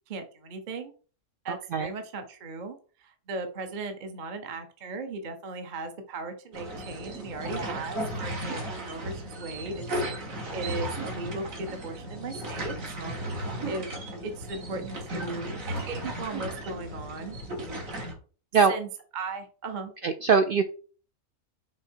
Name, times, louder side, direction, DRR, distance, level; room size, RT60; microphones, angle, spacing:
voice 1, 0.1-0.9 1.4-10.2 10.5-13.9 14.2-17.4 18.7-18.9 19.1-19.9, right 3 dB, 40° right, 6 dB, 0.8 m, -37 dB
voice 2, 1.5-1.9 7.5-7.7 18.5-18.7 20.0-20.6, right 5 dB, 85° right, 8 dB, 0.4 m, -23 dB
sound 1, 6.5-18.1, right 1 dB, 65° right, 2.0 m, -35 dB
6.4 x 3.7 x 4.5 m, 0.38 s
omnidirectional pair, 1.5 m